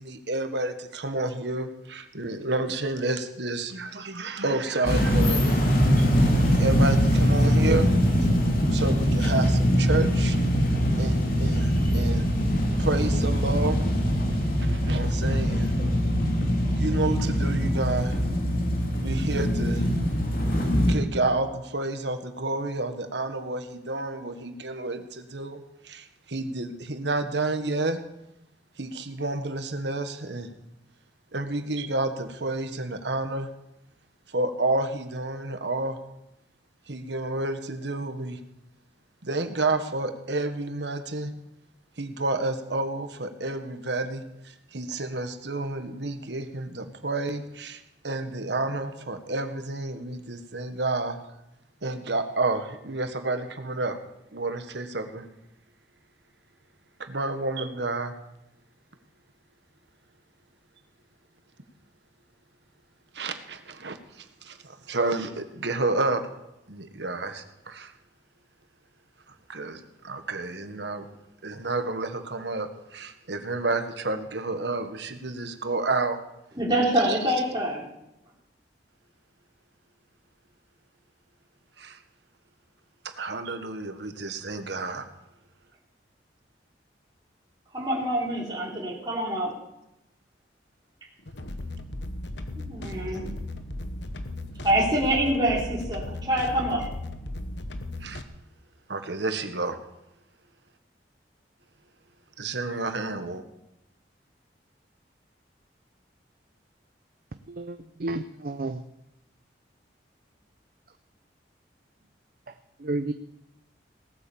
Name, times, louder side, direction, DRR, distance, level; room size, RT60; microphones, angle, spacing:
voice 1, 0.0-5.7 6.0-7.9 8.7-10.4 11.0-12.3 12.8-13.8 14.3-15.7 16.7-18.1 19.0-19.9 20.9-28.0 28.8-30.5 31.3-33.5 34.3-36.0 36.9-38.4 39.2-41.3 42.0-51.2 51.8-54.0 54.3-55.3 57.0-58.1 63.1-66.2 66.7-67.9 69.5-71.1 71.4-76.2 77.0-77.2 81.8-82.0 83.0-85.0 98.0-98.2 98.9-99.8 102.4-103.4, right 2 dB, 75° right, 8 dB, 1.4 m, -30 dB
sound 1, 4.8-20.9, equal, 50° left, 2.8 m, -22 dB
voice 2, 76.6-77.8 87.7-89.5 92.6-93.4 94.6-96.9, right 1 dB, 25° right, -4 dB, 3.5 m, -25 dB
sound 2, 91.2-98.2, left 1 dB, 80° left, 1.2 m, -36 dB
voice 3, 107.5-108.8 112.8-113.1, right 2 dB, 50° right, 9 dB, 0.6 m, -31 dB
18.0 x 8.8 x 7.1 m, 0.85 s
head